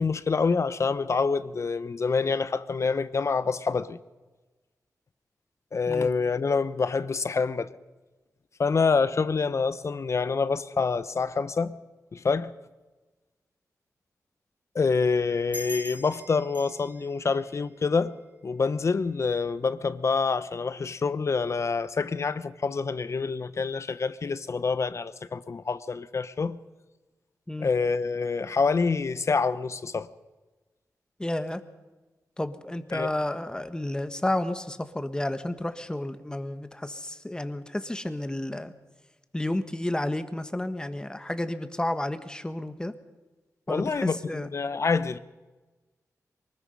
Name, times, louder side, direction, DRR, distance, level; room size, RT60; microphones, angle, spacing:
voice 1, 0.0-4.0 5.7-7.7 8.6-11.8 12.1-12.5 14.7-18.1 18.4-26.6 27.6-30.1 32.9-33.1 43.7-45.2, left 4 dB, 50° left, 0.9 m, -26 dB
sound 1, 15.5-18.6, equal, 25° right, 2.4 m, -43 dB
voice 2, 31.2-31.6 32.4-38.7 39.3-42.9 43.7-44.5, left 1 dB, 15° left, 1.5 m, -31 dB
23.5 x 20.0 x 5.5 m
wide cardioid pair, 85°, 6 cm